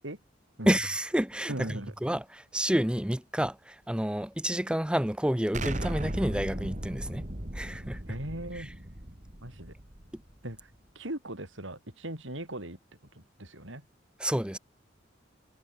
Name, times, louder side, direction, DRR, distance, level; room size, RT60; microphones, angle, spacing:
voice 1, 0.7-7.3 7.5-8.0 8.6-8.7 10.1-10.2 14.2-14.6, equal, 5° right, 0.8 m, -29 dB
voice 2, 1.5-1.9 8.1-8.7 9.4-9.7 10.4-12.8 13.1-13.8, right 1 dB, 80° right, 7.9 m, -39 dB
Explosion, 5.5-10.4, right 1 dB, 40° right, 3.2 m, -36 dB
head